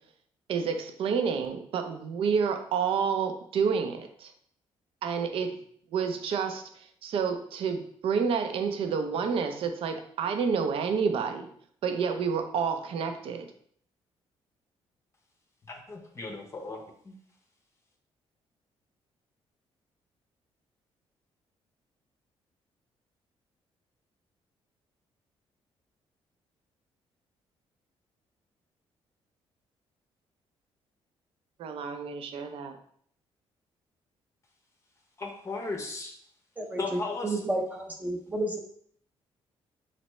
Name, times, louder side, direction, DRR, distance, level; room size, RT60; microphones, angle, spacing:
voice 1, 0.5-4.3 5.0-5.6 5.9-11.5 11.8-13.5 31.6-32.8, right 6 dB, 65° right, 6 dB, 0.5 m, -29 dB
voice 2, 15.7-17.1 35.2-36.1 36.8-37.4, left 3 dB, 25° left, 3 dB, 0.6 m, -36 dB
voice 3, 37.2-38.6, right 2 dB, 15° right, 2 dB, 0.6 m, -31 dB
4.1 x 3.3 x 3.1 m, 0.63 s
cardioid pair, 130°, 10 cm